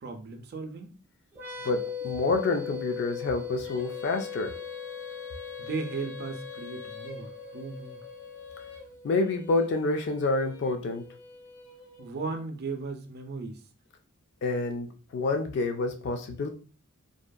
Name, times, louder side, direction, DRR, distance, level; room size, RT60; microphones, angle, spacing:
voice 1, 0.0-1.0 5.6-8.0 12.0-13.6, right 4 dB, 50° right, 6 dB, 0.4 m, -36 dB
sound 1, 1.3-8.8, left 7 dB, 10° right, 0.7 m, -39 dB
voice 2, 1.6-4.5 9.0-11.0 14.4-16.5, left 3 dB, 55° left, 5 dB, 0.3 m, -28 dB
Female singing, 3.6-12.4, left 4 dB, 90° left, 0.8 m, -46 dB
2.6 x 2.4 x 2.2 m, 0.36 s
head